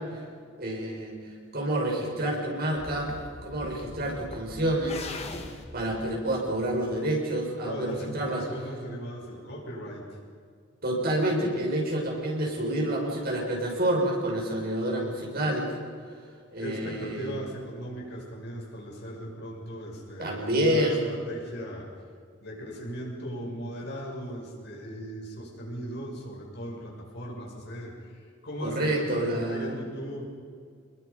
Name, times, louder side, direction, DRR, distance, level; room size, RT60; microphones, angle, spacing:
voice 1, 0.6-1.2 1.5-3.1 3.4-5.1 5.7-8.5 10.8-15.7 16.5-17.4 20.2-21.1 28.6-29.8, right 1 dB, 50° right, -1 dB, 6.0 m, -28 dB
sound 1, 2.8-7.0, left 2 dB, 35° left, 2.0 m, -42 dB
voice 2, 7.6-10.2 16.6-21.9 22.4-30.3, equal, 60° left, -2 dB, 6.7 m, -38 dB
28.0 x 21.5 x 5.4 m, 2.2 s
head